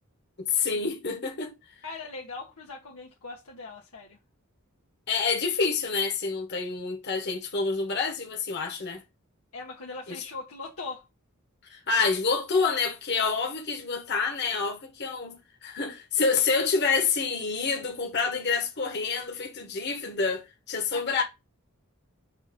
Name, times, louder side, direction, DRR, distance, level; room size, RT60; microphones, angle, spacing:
voice 1, 0.5-1.5 5.1-9.0 10.1-10.2 11.6-21.2, left 4 dB, 50° left, 1.4 m, -28 dB
voice 2, 1.8-4.2 9.5-11.0, left 3 dB, 80° left, 1.3 m, -40 dB
6.5 x 2.8 x 5.2 m
head